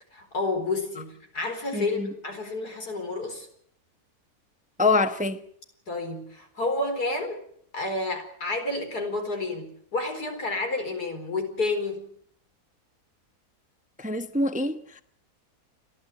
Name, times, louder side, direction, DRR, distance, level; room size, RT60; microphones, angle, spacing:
voice 1, 0.1-3.5 5.9-7.4 7.7-12.1, left 2 dB, 80° left, 4.9 m, -30 dB
voice 2, 1.7-2.1 4.8-5.4 14.0-15.0, left 3 dB, 5° right, 0.8 m, -25 dB
30.0 x 11.5 x 9.6 m
omnidirectional pair, 1.6 m